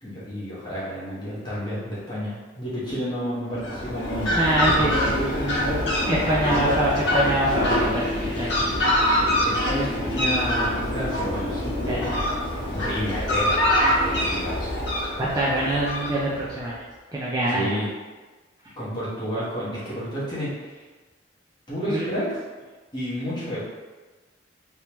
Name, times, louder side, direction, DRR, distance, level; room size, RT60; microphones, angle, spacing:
voice 1, 0.0-4.3 4.7-5.9 6.5-7.0 9.1-12.1 12.7-14.8 17.5-17.9 18.8-20.8 21.7-22.3 22.9-23.6, equal, 25° left, -9 dB, 1.1 m, -30 dB
Fowl, 3.5-16.6, left 1 dB, 65° left, 1.3 m, -24 dB
voice 2, 4.3-5.1 6.1-8.1 8.4-8.7 11.9-12.2 15.2-16.7 17.1-17.7 21.9-22.1, right 1 dB, 20° right, -6 dB, 0.4 m, -24 dB
3.4 x 2.9 x 2.9 m, 1.3 s
head